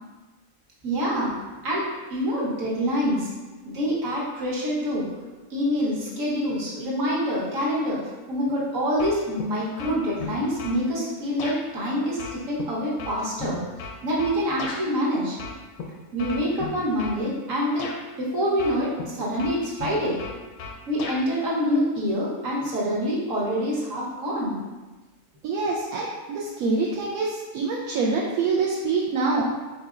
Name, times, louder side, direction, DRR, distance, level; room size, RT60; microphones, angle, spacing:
voice 1, 0.8-1.3 1.6-3.3 3.6-5.1 5.5-8.0 8.3-13.6 14.0-15.4 16.1-17.9 18.2-20.2 20.9-24.6, equal, 65° right, -6 dB, 1.6 m, -26 dB
sound 1, 9.0-9.5 9.8-10.8 11.4-11.6 12.2-14.8 15.4-15.8 16.2-17.2 17.8-18.0 18.6-19.1 19.4-21.2, left 4 dB, 85° left, 1.1 m, -36 dB
voice 2, 25.4-29.5, right 4 dB, 80° right, -4 dB, 1.1 m, -25 dB
4.8 x 4.2 x 2.4 m, 1.2 s
omnidirectional pair, 1.5 m